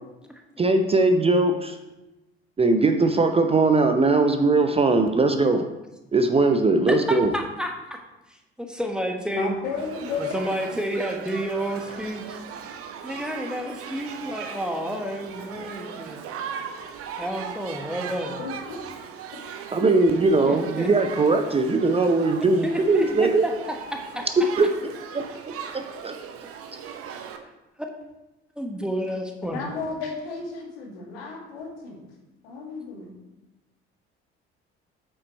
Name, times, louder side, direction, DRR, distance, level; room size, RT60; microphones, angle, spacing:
voice 1, 0.6-1.8 2.6-5.7 6.1-7.3 19.7-23.4 24.6-26.1, right 3 dB, 20° right, 6 dB, 0.6 m, -20 dB
voice 2, 6.9-8.0 8.6-9.5 10.3-12.2 13.0-16.2 17.2-18.4 20.5-20.9 22.6-23.5 23.9-24.3 28.6-29.6, equal, ahead, 2 dB, 1.2 m, -30 dB
voice 3, 9.3-10.3 18.4-18.8 29.5-32.1 32.4-33.1, left 4 dB, 65° left, 0 dB, 1.8 m, -33 dB
Shout / Human group actions, 9.8-27.4, right 7 dB, 45° right, 0.9 m, -38 dB
8.4 x 5.3 x 4.3 m, 1.0 s
figure-of-eight pair, 55°, 32 cm